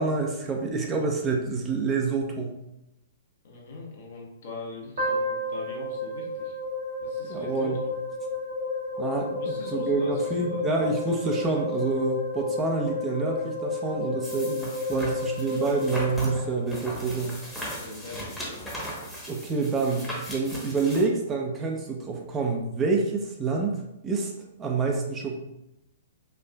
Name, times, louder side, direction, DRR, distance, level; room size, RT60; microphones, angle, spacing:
voice 1, 0.0-2.5 7.3-7.8 9.0-17.4 19.3-24.3 24.6-25.3, right 4 dB, 20° right, 0 dB, 0.6 m, -27 dB
voice 2, 3.4-6.6 7.0-7.9 9.4-10.7 17.6-18.8, left 2 dB, 60° left, -1 dB, 1.0 m, -41 dB
sound 1, 5.0-17.2, left 3 dB, 70° right, 1.3 m, -32 dB
sound 2, 14.2-21.0, equal, 5° left, 1.0 m, -38 dB
4.4 x 2.4 x 2.3 m, 0.86 s
figure-of-eight pair, 115°, 0 cm